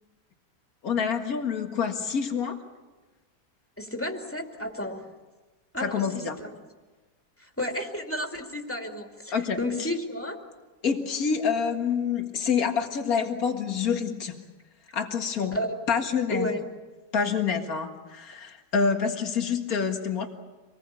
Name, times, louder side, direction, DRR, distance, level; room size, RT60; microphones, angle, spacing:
voice 1, 0.8-2.6 5.8-6.4 9.3-9.6 10.8-14.4 14.9-15.6 15.9-16.5 17.1-20.3, left 6 dB, 60° left, 4 dB, 2.3 m, -27 dB
voice 2, 3.8-5.0 5.7-6.5 7.4-10.4 15.5-15.8 16.3-16.6, left 1 dB, 10° left, 2 dB, 2.6 m, -32 dB
26.5 x 20.5 x 8.4 m, 1.2 s
omnidirectional pair, 1.8 m